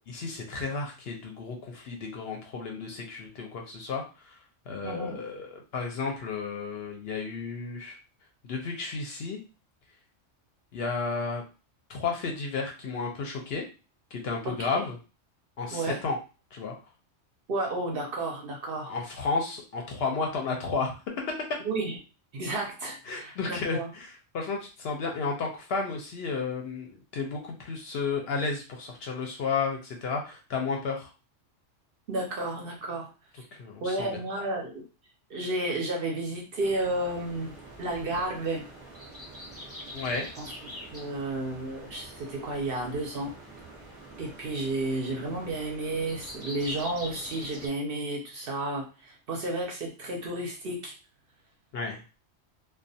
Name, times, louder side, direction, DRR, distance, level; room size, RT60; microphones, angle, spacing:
voice 1, 0.1-4.4 4.7-8.0 8.4-9.4 10.7-11.4 11.9-13.6 14.1-15.0 15.6-16.2 16.5-16.7 18.9-20.9 23.1-31.1 33.5-34.1 39.9-40.3 51.7-52.0, left 4 dB, 65° left, 1 dB, 0.7 m, -32 dB
voice 2, 4.8-5.2 14.4-14.8 15.7-16.0 17.5-18.9 21.6-22.0 22.3-23.9 32.1-33.1 33.4-33.5 33.8-34.8 35.3-38.6 40.4-43.3 44.2-50.9, right 2 dB, 60° right, 0 dB, 0.7 m, -32 dB
sound 1, 36.6-47.7, equal, 15° right, 0.5 m, -45 dB
2.3 x 2.1 x 2.6 m, 0.33 s
omnidirectional pair, 1.3 m